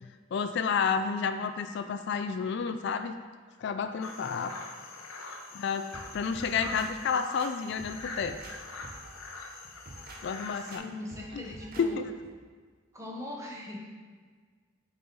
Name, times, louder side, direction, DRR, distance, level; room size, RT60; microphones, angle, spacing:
voice 1, 0.3-3.1 3.6-4.6 5.5-5.9 6.1-8.4 10.2-10.8 11.3-11.4 11.8-12.0, left 6 dB, 55° left, 9 dB, 0.3 m, -30 dB
sound 1, 4.0-10.8, left 3 dB, 85° left, 0.8 m, -44 dB
sound 2, 5.9-6.9 7.4-8.6 8.8-9.2 9.6-10.2 10.7-10.8 11.1-11.9 12.2-12.3, right 2 dB, 45° right, 0.7 m, -47 dB
voice 2, 10.6-12.0 12.9-13.8, left 2 dB, 15° right, -1 dB, 0.9 m, -41 dB
8.5 x 4.3 x 3.9 m, 1.5 s
head